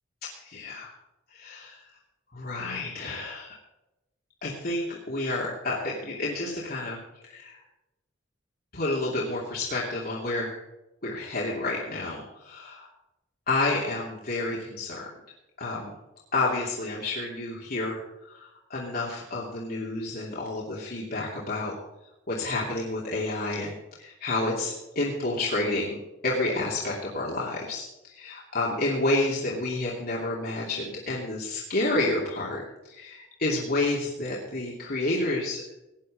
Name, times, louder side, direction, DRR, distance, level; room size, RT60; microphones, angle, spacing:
voice 1, 0.4-0.9 1.3-1.8 2.3-3.5 4.4-7.0 7.3-7.6 8.7-10.6 11.0-12.9 13.5-15.0 15.6-15.9 16.3-18.0 18.3-21.7 22.3-27.8 28.1-35.7, left 2 dB, 55° left, -4 dB, 2.9 m, -30 dB
17.5 x 10.0 x 5.0 m, 0.95 s
head